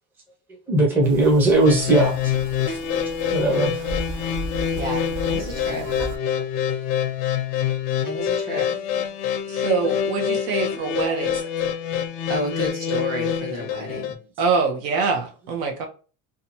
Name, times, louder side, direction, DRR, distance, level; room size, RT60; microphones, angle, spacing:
voice 1, 0.7-2.3 2.7-2.8 3.3-3.8 8.5-8.6 11.0-11.1, right 2 dB, 5° right, -4 dB, 0.5 m, -19 dB
sound 1, 1.0-6.2, right 2 dB, 55° right, 0.5 m, -35 dB
sound 2, 1.6-14.1, left 8 dB, 90° left, 0.6 m, -26 dB
voice 2, 4.7-5.9 8.0-8.7 9.5-10.0 12.3-14.2, equal, 25° right, -2 dB, 1.2 m, -31 dB
voice 3, 9.5-11.4 14.4-15.9, right 4 dB, 85° right, 3 dB, 0.9 m, -24 dB
2.7 x 2.3 x 2.8 m, 0.35 s
cardioid pair, 165°, 35 cm